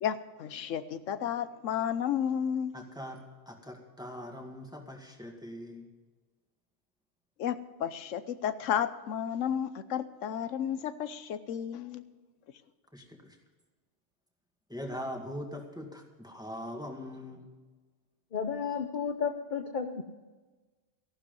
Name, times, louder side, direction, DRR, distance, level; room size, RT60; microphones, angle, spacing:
voice 1, 0.0-2.7 7.4-12.0, left 9 dB, 90° left, 1.1 m, -32 dB
voice 2, 2.7-5.9 12.9-13.4 14.7-17.5, equal, 5° right, 1.9 m, -42 dB
voice 3, 18.3-20.0, left 6 dB, 45° left, 0.9 m, -32 dB
15.0 x 12.0 x 5.3 m
omnidirectional pair, 1.3 m